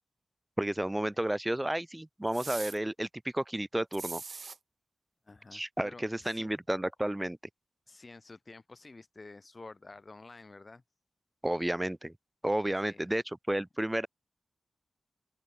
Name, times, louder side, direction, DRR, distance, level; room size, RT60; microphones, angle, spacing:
voice 1, 0.6-4.2 5.5-7.4 11.4-12.1 12.4-14.1, right 1 dB, 15° right, 0.4 m, -32 dB
sound 1, 2.3-2.8 3.9-4.6, right 4 dB, 60° right, 1.8 m, -41 dB
voice 2, 5.2-6.5 7.9-10.8 12.7-13.1, left 3 dB, 40° left, 2.9 m, -50 dB
open air
cardioid pair, 50°, 0 cm